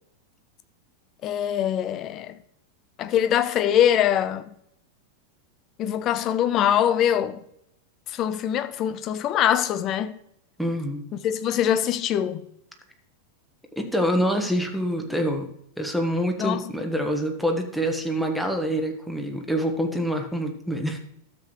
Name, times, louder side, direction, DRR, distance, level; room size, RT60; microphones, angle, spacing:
voice 1, 1.2-2.3 3.0-4.4 5.8-7.4 8.1-10.1 11.2-12.4 16.4-16.6, left 10 dB, 35° left, 0.7 m, -23 dB
voice 2, 10.6-11.0 13.8-15.5 15.8-21.0, equal, ahead, 1.4 m, -26 dB
12.5 x 7.7 x 3.1 m
figure-of-eight pair, 90°, 0 cm